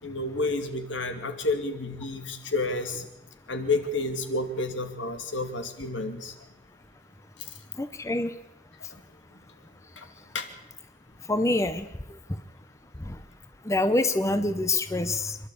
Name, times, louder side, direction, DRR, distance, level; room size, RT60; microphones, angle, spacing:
voice 1, 0.0-3.0 3.5-6.3 10.0-10.1 10.3-10.5, left 2 dB, 75° left, 6 dB, 2.6 m, -30 dB
voice 2, 7.8-8.3 11.3-11.9 13.1-13.2 13.7-15.4, left 2 dB, 15° left, 10 dB, 0.7 m, -25 dB
27.0 x 12.0 x 8.5 m, 0.91 s
head